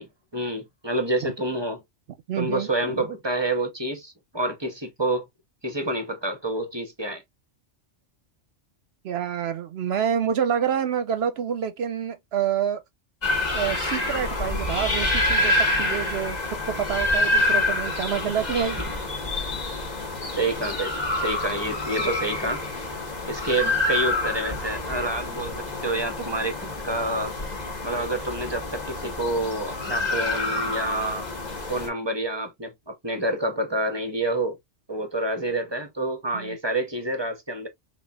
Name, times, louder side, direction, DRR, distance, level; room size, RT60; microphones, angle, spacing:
voice 1, 0.0-1.8 2.4-5.3 5.6-7.2 18.6-18.7 20.3-22.6 23.3-27.3 27.8-31.3 31.7-34.6 34.9-37.7, right 2 dB, 25° right, 0.6 m, -28 dB
voice 2, 2.3-3.0 9.0-12.8 13.5-18.8 36.3-36.6, right 8 dB, 65° right, 0.8 m, -27 dB
sound 1, 13.2-31.9, left 2 dB, 35° left, 1.3 m, -27 dB
4.1 x 3.5 x 2.3 m
omnidirectional pair, 1.2 m